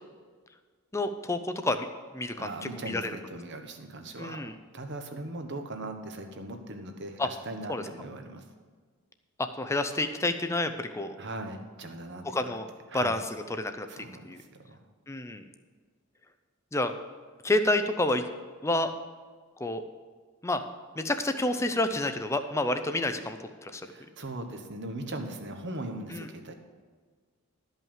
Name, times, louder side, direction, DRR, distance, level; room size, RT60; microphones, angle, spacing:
voice 1, 0.9-1.9 2.1-3.2 4.2-4.5 7.2-7.3 7.7-7.8 9.4-11.2 12.2-12.7 12.9-13.9 14.2-14.4 15.1-15.4 16.7-16.9 17.4-18.2 18.6-18.9 19.6-19.8 20.4-20.6 21.0-23.4 23.6-23.9 26.1-26.3, left 2 dB, 15° left, 8 dB, 0.5 m, -29 dB
voice 2, 2.3-4.4 4.7-8.4 11.2-12.6 12.9-13.1 13.9-14.8 23.9-26.5, right 2 dB, 50° right, 5 dB, 1.1 m, -39 dB
12.5 x 5.5 x 7.3 m, 1.5 s
head